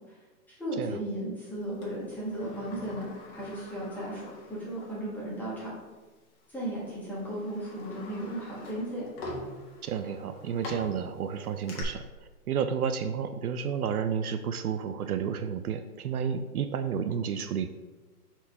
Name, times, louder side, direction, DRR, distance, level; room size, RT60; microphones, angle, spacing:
voice 1, 0.5-5.7 6.5-9.1, right 1 dB, 5° left, -8 dB, 1.6 m, -35 dB
Sliding door, 1.8-5.0 5.4-5.5 6.4-6.6 7.1-11.8, left 2 dB, 35° left, 1.5 m, -44 dB
voice 2, 9.8-12.0 12.5-17.7, right 7 dB, 70° right, 9 dB, 0.5 m, -31 dB
4.4 x 4.2 x 5.6 m, 1.3 s
hypercardioid pair, 145°, 47 cm